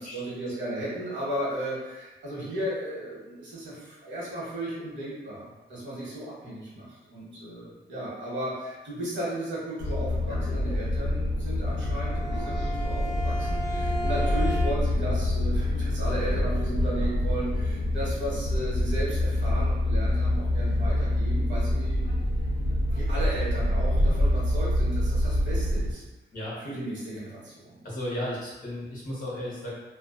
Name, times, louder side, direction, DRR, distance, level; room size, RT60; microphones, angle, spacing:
voice 1, 0.1-22.2 22.9-26.0 26.6-27.8, right 1 dB, 80° right, -7 dB, 1.0 m, -35 dB
sound 1, 9.8-25.9, left 1 dB, 70° left, 0.5 m, -26 dB
Bowed string instrument, 11.7-15.1, right 1 dB, 15° left, 0.9 m, -35 dB
voice 2, 27.8-29.7, left 1 dB, 45° left, -7 dB, 0.9 m, -34 dB
2.3 x 2.2 x 2.4 m, 1.1 s
wide cardioid pair, 170°, 19 cm